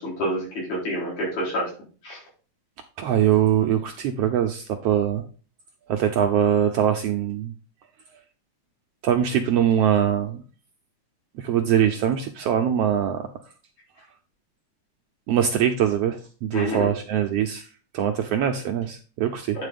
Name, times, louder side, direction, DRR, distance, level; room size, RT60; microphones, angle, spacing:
voice 1, 0.0-1.7 2.0-2.2 16.5-16.9 19.6-19.7, equal, 70° left, -5 dB, 5.6 m, -28 dB
voice 2, 3.0-5.2 5.9-7.5 9.0-10.4 11.4-13.3 15.3-17.7 17.9-19.7, right 9 dB, 75° right, 4 dB, 1.4 m, -22 dB
9.2 x 4.1 x 5.2 m, 0.38 s
omnidirectional pair, 3.4 m